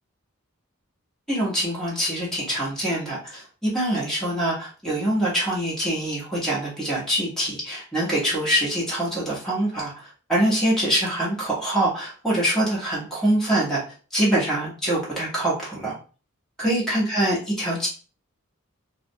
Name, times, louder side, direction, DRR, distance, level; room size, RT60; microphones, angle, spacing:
voice 1, 1.3-13.8 14.1-15.9 16.6-17.9, right 1 dB, ahead, -7 dB, 1.0 m, -24 dB
2.3 x 2.0 x 2.6 m, 0.36 s
head